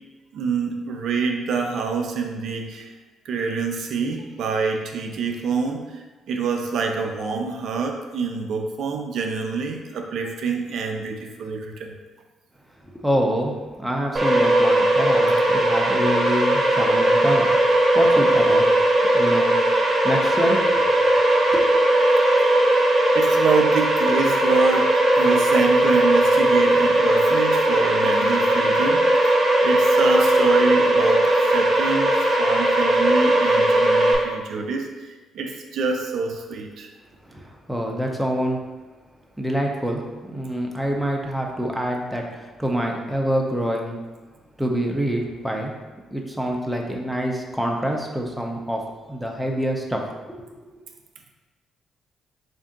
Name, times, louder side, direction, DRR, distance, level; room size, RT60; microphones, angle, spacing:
voice 1, 0.3-2.9 3.3-11.9 23.1-36.9, right 4 dB, 70° right, 3 dB, 0.4 m, -26 dB
voice 2, 12.8-18.7 19.1-19.6 20.0-20.8 21.5-21.7 37.2-38.6 39.4-44.0 44.6-45.7 46.1-50.1, equal, 5° right, 0 dB, 0.6 m, -26 dB
sound 1, 14.2-34.2, right 1 dB, 30° right, 0.9 m, -18 dB
3.6 x 2.6 x 3.6 m, 1.2 s
cardioid pair, 90°, 0 cm